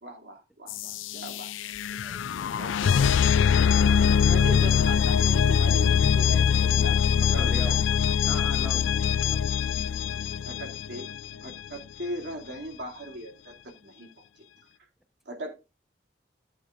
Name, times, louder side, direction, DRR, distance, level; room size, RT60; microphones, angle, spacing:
voice 1, 0.0-1.5 1.9-2.2 2.6-3.1 4.2-7.8 10.4-14.1 14.4-14.5 15.3-15.5, right 1 dB, 65° right, 2.7 m, -39 dB
sound 1, 0.7-11.5, left 7 dB, 90° left, 0.4 m, -23 dB
voice 2, 7.4-7.8 8.3-9.4, equal, ahead, 0.8 m, -39 dB
14.0 x 8.4 x 2.5 m
head